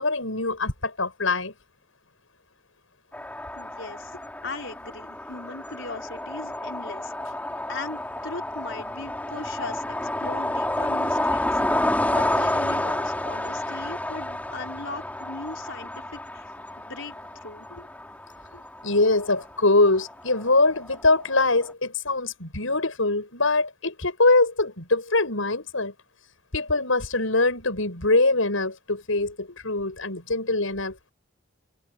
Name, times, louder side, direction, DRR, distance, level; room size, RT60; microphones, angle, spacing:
voice 1, 0.0-1.5 17.7-17.8 18.5-25.9 26.5-31.1, left 2 dB, 80° left, 6.8 m, -23 dB
sound 1, 3.1-21.7, left 1 dB, 10° left, 3.4 m, -30 dB
voice 2, 3.6-4.1 4.4-7.4 7.7-11.8 12.1-16.4 16.8-17.1 17.4-17.7, left 3 dB, 65° left, 4.7 m, -39 dB
head